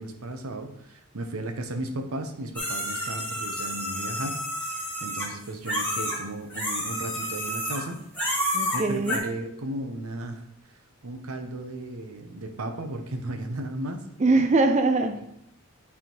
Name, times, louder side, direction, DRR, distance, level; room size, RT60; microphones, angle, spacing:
voice 1, 0.0-8.0 8.7-10.4 11.0-14.0 15.2-15.3, right 1 dB, 85° right, 6 dB, 0.9 m, -35 dB
sound 1, 2.6-6.2 6.5-7.9 8.1-9.2, equal, 5° left, 1.5 m, -30 dB
voice 2, 8.5-9.2 14.2-15.3, right 3 dB, 35° right, 6 dB, 0.4 m, -22 dB
8.6 x 3.6 x 4.5 m, 0.76 s
head